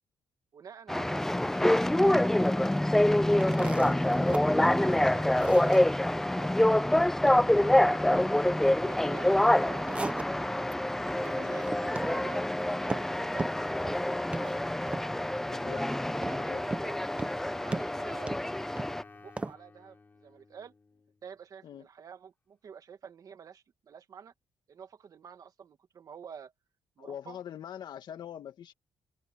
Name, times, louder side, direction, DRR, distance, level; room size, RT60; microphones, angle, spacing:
voice 1, 0.5-2.7 3.6-3.8 4.7-7.1 7.5-10.5 11.2-14.5 14.9-15.1 15.7-17.0 17.5-18.4 19.2-20.7 21.2-24.3 24.7-26.5 27.0-27.4, right 7 dB, 45° right, 2.0 m, -49 dB
sound 1, 0.9-19.0, left 1 dB, 5° left, 0.4 m, -26 dB
sound 2, 3.3-4.4 4.8-4.9 5.4-5.8 9.5-10.8 11.1-11.3 11.6-12.2 12.4-13.1 13.4-14.0 14.3-14.5 14.9-15.3 16.2-16.9 17.2-17.4 17.7-18.9 19.4-19.5, right 3 dB, 15° right, 0.8 m, -36 dB
voice 2, 15.5-15.8 16.3-16.6 21.6-21.9 27.0-28.7, left 9 dB, 55° left, 1.7 m, -43 dB
Wind instrument woodwind instrument, 15.6-21.3, left 3 dB, 20° left, 5.1 m, -53 dB
cardioid pair, 160°, 9 cm